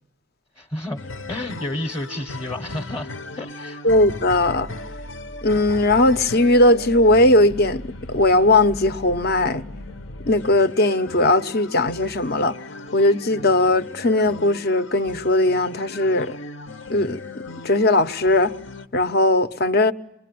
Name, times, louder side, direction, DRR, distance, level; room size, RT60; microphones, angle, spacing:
voice 1, 0.6-1.0 1.3-3.8, left 1 dB, 25° left, 1.1 m, -31 dB
The forgotten future, 1.0-18.9, left 2 dB, 80° left, 1.2 m, -37 dB
voice 2, 3.8-4.7 5.4-9.6 10.3-12.6 12.9-16.3 16.9-17.2 17.6-18.5 18.9-19.9, left 2 dB, 55° left, 1.0 m, -18 dB
26.0 x 22.0 x 9.3 m
head